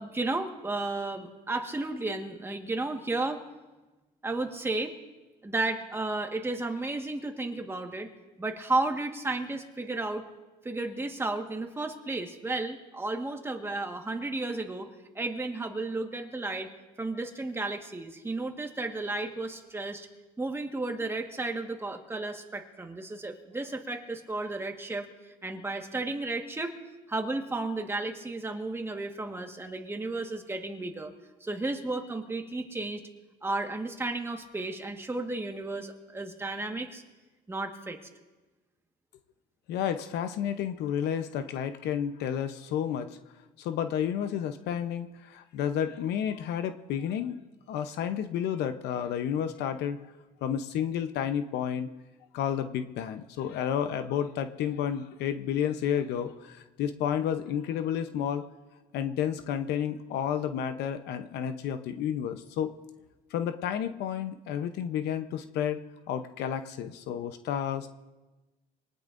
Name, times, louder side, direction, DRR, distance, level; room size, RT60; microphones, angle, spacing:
voice 1, 0.0-3.4 4.2-4.9 5.4-8.1 8.4-10.2 10.6-14.9 15.1-16.7 17.0-20.1 20.4-25.1 25.4-26.7 27.1-31.1 31.4-33.0 33.4-37.0 37.5-38.0, right 2 dB, 15° right, 4 dB, 1.6 m, -33 dB
voice 2, 39.7-43.2 43.6-47.4 47.7-50.0 50.4-51.9 52.3-58.4 58.9-62.7 63.3-65.8 66.1-67.9, left 9 dB, 80° left, 9 dB, 0.8 m, -31 dB
24.0 x 19.0 x 2.6 m, 1.2 s
cardioid pair, 110°, 17 cm